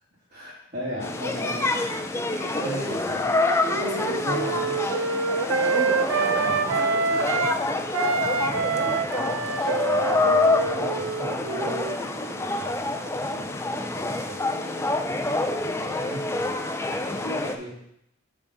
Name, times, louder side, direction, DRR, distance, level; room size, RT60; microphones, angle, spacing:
voice 1, 0.3-2.2 2.5-3.3 4.1-4.8 6.3-6.6 9.1-14.4 15.8-16.6 17.1-17.7, equal, 35° right, -10 dB, 2.1 m, -37 dB
sound 1, 1.0-17.6, left 2 dB, 15° left, 0.4 m, -27 dB
voice 2, 2.3-3.2 3.7-4.2 5.5-7.8 14.5-15.0 17.2-17.6, equal, 35° left, -2 dB, 1.4 m, -36 dB
Wind instrument woodwind instrument, 3.1-7.6 7.9-12.4, right 4 dB, 85° right, 0.4 m, -27 dB
10.5 x 3.7 x 3.8 m, 0.78 s
head